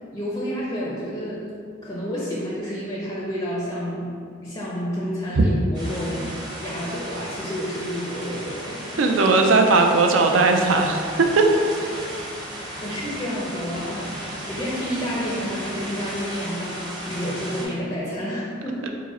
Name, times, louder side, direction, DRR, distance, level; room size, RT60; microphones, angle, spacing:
voice 1, 0.1-1.5 1.8-9.2 12.4-18.9, equal, 20° left, -5 dB, 0.4 m, -30 dB
sound 1, 5.7-17.7, right 1 dB, 20° right, 0.8 m, -35 dB
voice 2, 9.0-11.1 11.4-11.5, right 3 dB, 75° right, 3 dB, 0.4 m, -18 dB
4.7 x 2.1 x 4.1 m, 2.3 s
head